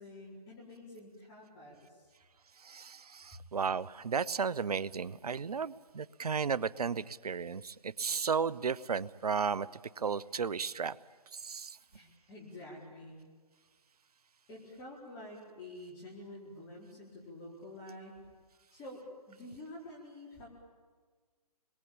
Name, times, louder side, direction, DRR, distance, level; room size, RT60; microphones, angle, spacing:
voice 1, 0.0-2.1 3.3-3.4 11.9-13.2 14.5-18.2 18.7-19.0 19.3-20.5, left 1 dB, 15° left, -4 dB, 4.7 m, -48 dB
voice 2, 2.6-9.7 10.0-11.0 11.3-11.8, right 6 dB, 70° right, 19 dB, 1.0 m, -34 dB
29.5 x 22.0 x 8.8 m, 1.5 s
hypercardioid pair, 155°, 20 cm